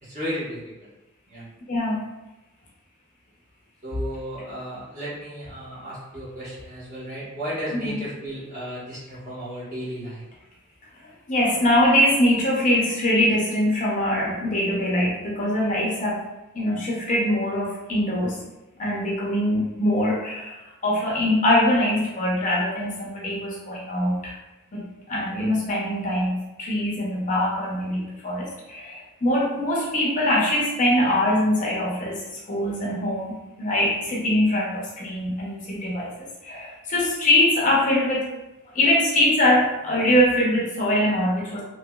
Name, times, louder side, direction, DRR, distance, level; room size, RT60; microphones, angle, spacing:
voice 1, 0.0-0.9 1.3-1.5 3.8-10.2, equal, 35° right, -9 dB, 1.1 m, -34 dB
voice 2, 1.7-2.0 7.7-8.0 11.0-16.2 16.5-18.4 18.8-24.3 24.7-32.2 32.5-38.3 38.7-41.6, left 1 dB, 35° left, -4 dB, 0.6 m, -23 dB
2.8 x 2.8 x 2.2 m, 1.0 s
head